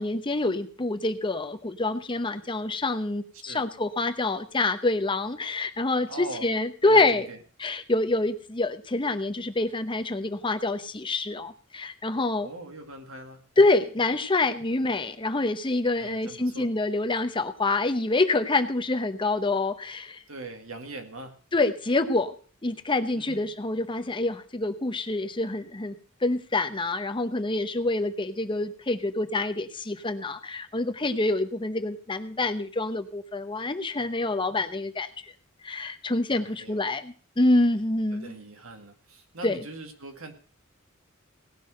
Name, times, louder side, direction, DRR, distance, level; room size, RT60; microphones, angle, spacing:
voice 1, 0.0-7.3 7.6-12.5 13.6-20.2 21.5-22.3 22.6-26.0 26.2-35.1 35.6-38.4 39.4-39.6, left 2 dB, 25° left, 9 dB, 0.8 m, -26 dB
voice 2, 6.1-6.5 6.8-7.4 12.4-13.4 14.7-14.8 16.0-16.7 20.3-21.3 23.1-23.5 36.4-36.9 38.1-40.3, right 2 dB, 90° right, 5 dB, 2.2 m, -41 dB
17.5 x 6.2 x 6.3 m, 0.41 s
head